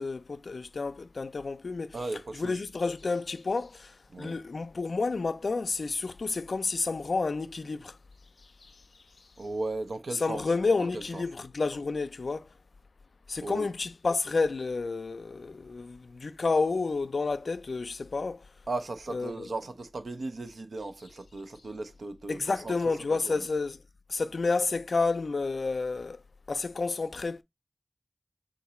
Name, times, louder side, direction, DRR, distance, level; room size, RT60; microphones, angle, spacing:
voice 1, 0.0-2.0 2.3-8.0 8.6-8.8 10.1-12.5 13.3-18.4 19.1-19.5 22.3-23.8 24.1-26.2 26.5-27.4, left 3 dB, 75° left, 0.4 m, -30 dB
voice 2, 1.9-2.6 4.1-4.4 9.4-10.4 10.8-11.2 13.4-13.7 18.7-22.7 23.1-23.5, right 2 dB, 80° right, 0.6 m, -36 dB
3.9 x 2.5 x 4.1 m
wide cardioid pair, 75°, 0 cm